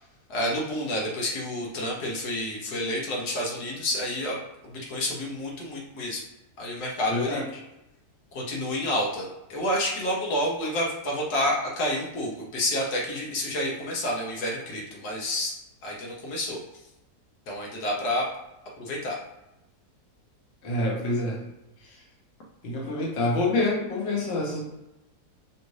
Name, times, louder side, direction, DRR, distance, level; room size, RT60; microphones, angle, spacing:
voice 1, 0.3-4.4 4.7-6.2 6.6-7.4 8.3-15.5 15.8-16.6 17.5-18.3 18.8-19.2, left 1 dB, 75° left, -2 dB, 1.4 m, -29 dB
voice 2, 7.1-7.4 20.6-21.4 21.8-22.0 22.6-24.6, left 2 dB, 45° left, -2 dB, 1.1 m, -27 dB
5.3 x 2.4 x 3.1 m, 0.95 s
omnidirectional pair, 1.7 m